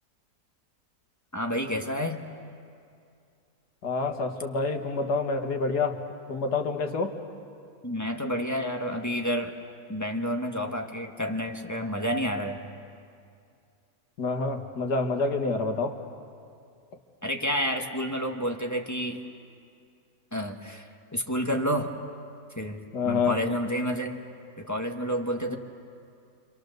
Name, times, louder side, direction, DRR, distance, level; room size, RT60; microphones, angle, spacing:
voice 1, 1.3-2.2 7.8-9.5 9.9-12.6 17.2-19.2 20.3-21.9 22.6-24.1 24.6-25.6, equal, 10° left, 2 dB, 1.3 m, -30 dB
voice 2, 3.8-6.0 6.3-7.1 14.2-16.0 22.9-23.4 25.5-25.6, left 4 dB, 85° left, 4 dB, 2.2 m, -27 dB
28.5 x 26.5 x 6.7 m, 2.4 s
omnidirectional pair, 1.7 m